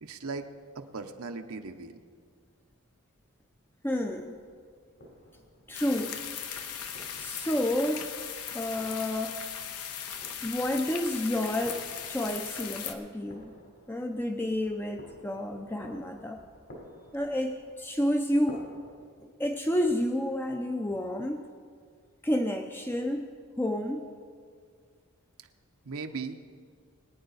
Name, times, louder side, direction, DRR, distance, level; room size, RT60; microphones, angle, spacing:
voice 1, 0.0-2.0 25.8-26.4, right 4 dB, 75° right, 6 dB, 0.8 m, -38 dB
sound 1, 3.8-19.0, left 1 dB, 65° left, 3.5 m, -54 dB
voice 2, 3.8-4.4 5.7-6.2 7.1-8.1 8.5-9.4 10.4-13.5 13.9-16.4 17.1-18.7 19.2-21.4 22.2-23.3 23.6-24.0, left 1 dB, 10° left, 4 dB, 0.5 m, -30 dB
sound 2, 5.7-12.9, left 8 dB, 85° left, 1.0 m, -38 dB
22.5 x 9.4 x 4.0 m, 2.1 s
head